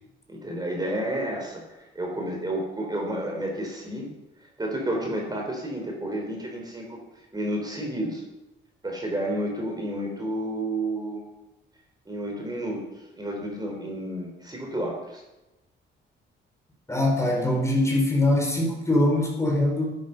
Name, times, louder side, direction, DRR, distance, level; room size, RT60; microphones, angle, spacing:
voice 1, 0.3-4.1 4.6-7.0 7.3-8.2 8.8-11.2 12.1-12.8 13.2-15.2, right 1 dB, 20° right, 0 dB, 3.8 m, -31 dB
voice 2, 16.9-19.9, left 1 dB, 15° left, 0 dB, 4.5 m, -22 dB
11.0 x 9.2 x 6.8 m, 1.0 s
cardioid pair, 90°, 20 cm